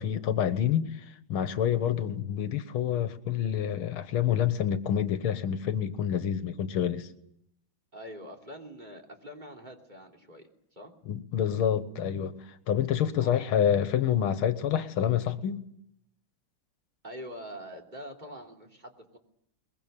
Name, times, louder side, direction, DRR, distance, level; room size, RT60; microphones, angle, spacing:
voice 1, 0.0-7.1 11.1-15.6, left 9 dB, 80° left, 2.0 m, -28 dB
voice 2, 7.9-10.9 13.2-13.4 17.0-19.2, equal, 20° right, 3.2 m, -44 dB
22.5 x 22.0 x 8.9 m
omnidirectional pair, 2.3 m